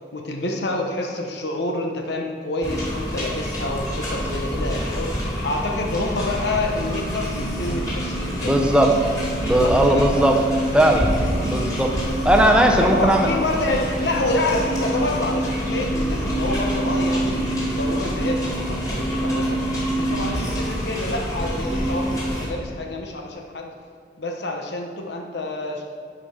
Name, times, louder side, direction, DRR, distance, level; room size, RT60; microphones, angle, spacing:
voice 1, 0.1-5.1 5.4-8.5 9.6-10.1 12.8-23.7 24.2-25.8, left 2 dB, 80° left, 2 dB, 1.0 m, -27 dB
sound 1, 2.6-22.5, equal, 20° left, 2.3 m, -26 dB
sound 2, 3.9-20.6, right 3 dB, 60° right, 1.3 m, -38 dB
voice 2, 8.4-9.0 9.4-10.4 10.7-11.1 11.4-11.9 12.2-13.3, right 1 dB, 5° right, 3 dB, 0.7 m, -17 dB
11.0 x 5.1 x 5.8 m, 2.1 s
head